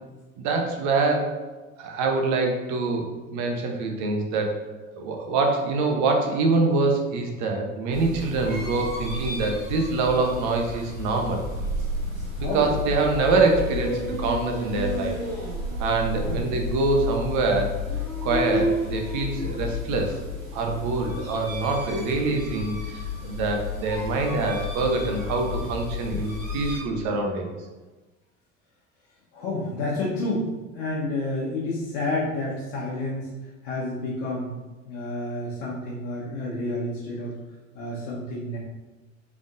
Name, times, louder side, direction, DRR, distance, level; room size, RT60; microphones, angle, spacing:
voice 1, 0.4-1.4 1.8-4.6 4.9-11.4 12.4-15.2 15.8-17.7 18.2-20.2 20.5-27.5, right 3 dB, 45° right, 2 dB, 0.9 m, -25 dB
sound 1, 7.9-26.8, left 2 dB, 80° right, 1.3 m, -31 dB
voice 2, 8.1-8.5 12.4-12.7 16.2-16.5 29.3-30.5 30.7-33.3 33.6-34.5 34.9-37.3 37.7-38.6, left 2 dB, 60° left, -7 dB, 1.2 m, -30 dB
5.1 x 3.5 x 2.5 m, 1.2 s
figure-of-eight pair, 70°, 40 cm